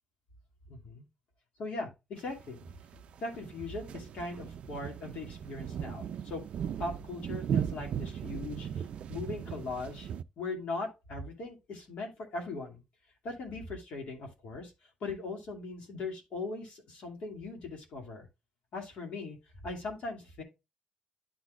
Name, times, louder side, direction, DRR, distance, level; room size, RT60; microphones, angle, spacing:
voice 1, 0.7-1.1 1.6-2.6 3.2-6.4 6.8-10.1 10.4-12.8 13.2-14.7 15.0-18.3 18.7-19.4 19.6-20.4, left 3 dB, 65° left, 2 dB, 2.5 m, -39 dB
sound 1, 2.2-10.2, right 8 dB, 60° right, 0.4 m, -37 dB
11.5 x 4.2 x 2.5 m, 0.25 s
cardioid pair, 145°, 2 cm